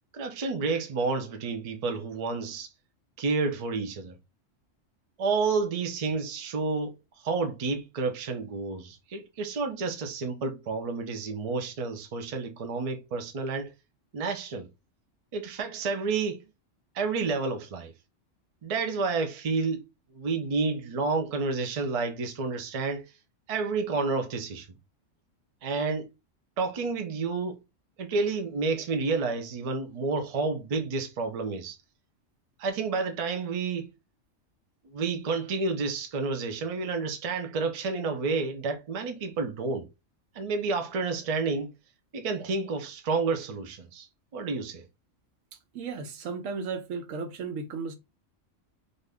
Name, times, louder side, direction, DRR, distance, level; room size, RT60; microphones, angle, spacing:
voice 1, 0.1-2.7 3.2-4.2 5.2-13.7 14.1-14.7 15.3-16.4 16.9-17.9 18.6-19.8 20.1-23.1 23.5-24.7 25.6-26.1 26.6-27.6 28.0-31.8 32.6-33.9 34.8-39.9 40.3-41.7 42.1-44.1 44.3-44.8, right 4 dB, 45° right, 0.4 m, -30 dB
voice 2, 45.7-47.9, right 5 dB, 85° right, 1.1 m, -35 dB
2.6 x 2.5 x 3.3 m
omnidirectional pair, 1.3 m